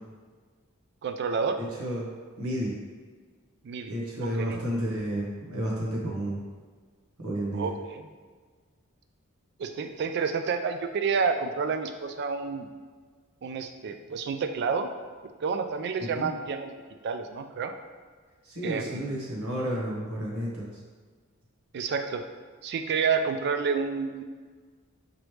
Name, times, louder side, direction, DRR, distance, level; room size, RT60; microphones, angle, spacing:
voice 1, 1.0-1.6 3.6-3.9 4.2-4.6 7.5-8.0 9.6-12.7 13.4-14.9 15.4-16.7 17.0-17.7 18.6-19.2 21.7-22.3 22.6-24.2, right 5 dB, 50° right, 8 dB, 0.3 m, -29 dB
voice 2, 1.6-2.1 2.4-2.7 3.9-6.4 7.2-7.7 16.1-16.3 18.4-20.8, equal, 90° right, -4 dB, 1.3 m, -31 dB
5.0 x 3.1 x 3.3 m, 1.5 s
head